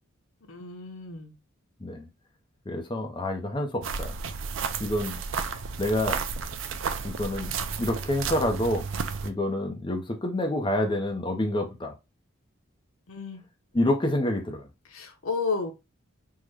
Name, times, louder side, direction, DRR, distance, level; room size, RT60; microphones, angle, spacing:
voice 1, 0.5-1.3 13.1-13.4 14.9-15.7, left 4 dB, 85° left, 0.7 m, -32 dB
voice 2, 2.7-4.1 4.8-5.2 5.8-6.2 7.0-7.5 7.8-8.9 9.2-11.9 13.7-14.7, left 1 dB, 20° left, 0.5 m, -27 dB
sound 1, 3.8-9.3, right 5 dB, 70° right, 0.4 m, -32 dB
3.6 x 2.1 x 3.1 m
head